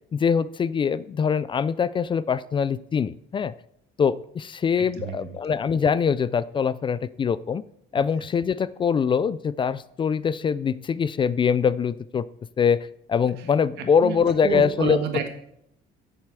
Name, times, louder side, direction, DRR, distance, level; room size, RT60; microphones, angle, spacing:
voice 1, 0.1-3.5 4.0-7.6 7.9-12.2 12.6-15.0, left 6 dB, 30° left, 18 dB, 0.3 m, -23 dB
voice 2, 4.8-5.4 8.0-8.1 13.8-15.3, right 7 dB, 80° right, 6 dB, 1.6 m, -30 dB
8.0 x 7.4 x 6.8 m, 0.75 s
cardioid pair, 110°, 17 cm